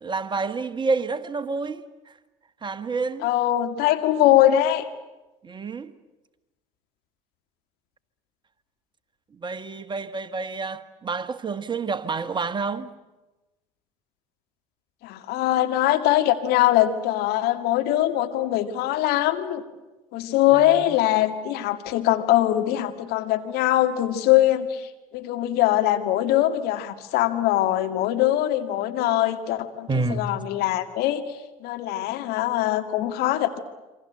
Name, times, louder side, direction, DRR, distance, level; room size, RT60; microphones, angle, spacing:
voice 1, 0.0-2.1 2.6-3.3 5.4-5.9 9.3-12.9 20.5-20.9 29.9-30.2, right 4 dB, 25° right, 1.5 m, -29 dB
voice 2, 3.2-4.8 15.0-19.6 20.1-31.2 31.6-33.6, left 13 dB, 60° left, 2.2 m, -22 dB
27.5 x 25.5 x 7.9 m
hypercardioid pair, 70°, 18 cm